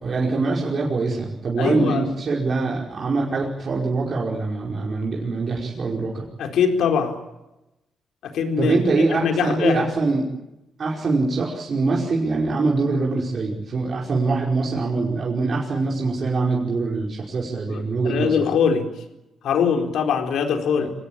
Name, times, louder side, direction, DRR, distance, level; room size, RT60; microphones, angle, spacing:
voice 1, 0.0-6.2 8.6-10.3 10.8-18.4 20.8-20.9, right 3 dB, 40° right, -2 dB, 5.1 m, -23 dB
voice 2, 1.6-2.0 6.4-7.2 8.2-8.8 9.1-9.9 17.7-18.9 19.4-20.9, left 6 dB, 75° left, 4 dB, 4.3 m, -22 dB
26.0 x 19.0 x 8.8 m, 0.94 s
cardioid pair, 130°, 0 cm